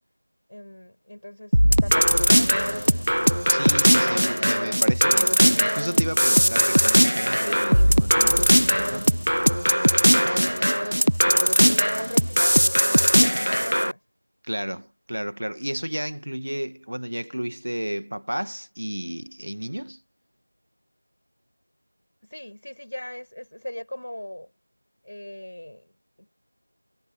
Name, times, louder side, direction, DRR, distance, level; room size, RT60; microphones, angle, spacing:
voice 1, 0.5-3.1 11.6-14.0 22.2-24.5 25.0-26.3, left 1 dB, 35° left, 6.9 m, -39 dB
sound 1, 1.5-13.9, equal, 80° right, 0.7 m, -19 dB
voice 2, 3.5-9.1 14.4-20.0, equal, 45° right, 2.0 m, -32 dB
figure-of-eight pair, 175°, 0 cm